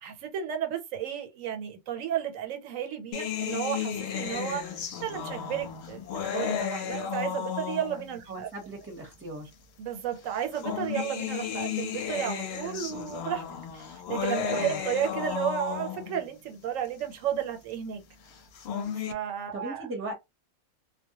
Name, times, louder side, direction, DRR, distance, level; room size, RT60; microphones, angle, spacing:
voice 1, 0.0-8.5 9.8-13.4 13.7-18.0 19.0-19.9, right 9 dB, 90° right, 1.0 m, -33 dB
sound 1, 3.1-8.2 9.1-9.2 10.3-16.2 18.4-19.1, left 8 dB, 65° left, 0.7 m, -33 dB
voice 2, 8.3-9.5 14.5-14.8 19.5-20.1, right 2 dB, 15° right, 0.6 m, -37 dB
2.1 x 2.1 x 2.8 m
omnidirectional pair, 1.3 m